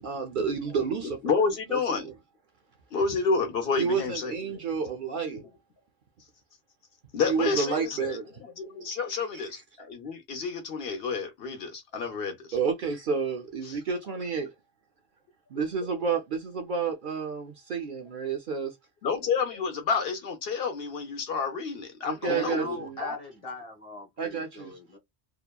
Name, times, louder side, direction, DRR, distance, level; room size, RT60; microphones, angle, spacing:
voice 1, 0.0-1.3 1.7-2.1 3.8-5.4 7.3-8.2 9.1-9.4 12.5-14.5 15.5-18.8 22.0-23.0 24.2-24.8, right 5 dB, 55° right, 0.6 m, -30 dB
voice 2, 1.2-2.1 2.9-4.3 7.1-8.2 8.6-12.5 13.7-13.8 19.0-23.2, left 5 dB, 65° left, 0.8 m, -29 dB
voice 3, 22.2-25.0, left 1 dB, 35° left, 0.9 m, -40 dB
2.8 x 2.1 x 2.2 m
omnidirectional pair, 1.1 m